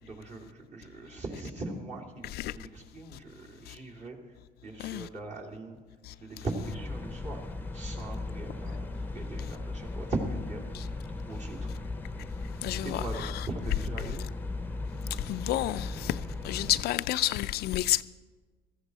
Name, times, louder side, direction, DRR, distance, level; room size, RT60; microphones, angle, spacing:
voice 1, 0.0-5.8 6.2-7.4 7.7-11.7 12.8-14.2, right 2 dB, 45° right, 2.7 m, -40 dB
sound 1, 6.6-16.8, left 2 dB, 10° left, 0.7 m, -37 dB
voice 2, 12.6-13.0 15.2-16.2 16.4-18.0, left 15 dB, 70° left, 0.4 m, -29 dB
16.0 x 14.0 x 4.0 m
cardioid pair, 110°, 17 cm